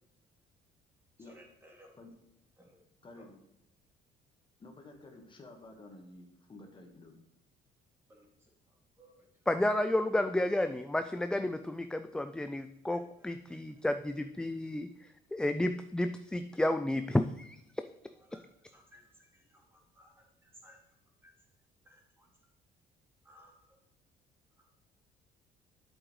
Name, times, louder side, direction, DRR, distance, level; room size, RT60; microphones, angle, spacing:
voice 1, 1.2-2.1 2.6-2.8 3.2-3.3 8.1-9.4 12.9-13.8 18.1-20.8 21.2-21.3 21.8-22.3 23.2-23.8 24.6-24.7, equal, 15° right, -1 dB, 2.5 m, -61 dB
voice 2, 3.0-3.4 4.6-7.1, left 2 dB, 30° left, 3 dB, 1.5 m, -52 dB
voice 3, 9.5-17.9, left 1 dB, 5° left, 9 dB, 0.3 m, -32 dB
8.6 x 7.8 x 3.2 m, 0.86 s
cardioid pair, 110°, 17 cm